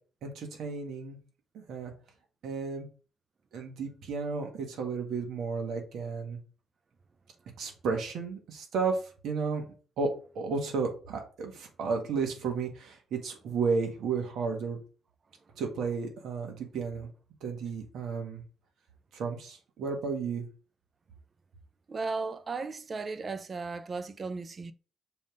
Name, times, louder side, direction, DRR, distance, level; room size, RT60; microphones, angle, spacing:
voice 1, 0.2-1.2 1.5-1.9 2.4-2.9 3.5-6.4 7.6-9.7 10.0-10.1 10.4-14.8 15.6-17.1 17.4-18.4 19.1-20.5, right 5 dB, 75° right, 1.8 m, -33 dB
voice 2, 21.9-24.7, right 4 dB, 35° right, 0.6 m, -35 dB
6.8 x 3.6 x 3.9 m
cardioid pair, 90°, 0 cm